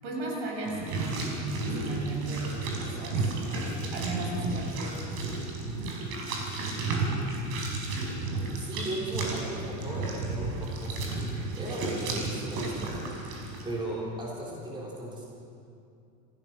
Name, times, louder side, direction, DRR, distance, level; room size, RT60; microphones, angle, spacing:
voice 1, 0.0-5.0, right 2 dB, 80° right, 0 dB, 7.2 m, -35 dB
sound 1, 0.6-13.6, right 3 dB, 55° right, 5.1 m, -33 dB
voice 2, 8.6-13.0 13.6-15.2, right 1 dB, 15° right, -4 dB, 3.9 m, -37 dB
27.5 x 15.5 x 6.3 m, 2.5 s
cardioid pair, 170°, 35 cm